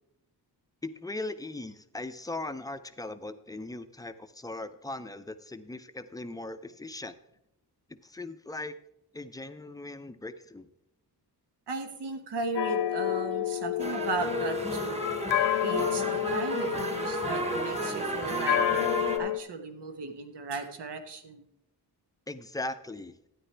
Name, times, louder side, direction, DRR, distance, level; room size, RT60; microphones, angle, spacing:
voice 1, 0.8-7.1 7.9-8.7 9.1-10.7 22.3-23.2, left 2 dB, 10° left, 10 dB, 0.5 m, -39 dB
voice 2, 11.7-15.0 15.6-18.9 19.2-21.4, right 4 dB, 90° right, 7 dB, 1.2 m, -36 dB
sound 1, 12.6-17.7 18.5-19.4, left 13 dB, 85° left, 0.7 m, -30 dB
sound 2, 13.8-19.2, right 1 dB, 15° right, 1.1 m, -32 dB
12.5 x 9.8 x 3.3 m, 0.80 s
wide cardioid pair, 150°, 40 cm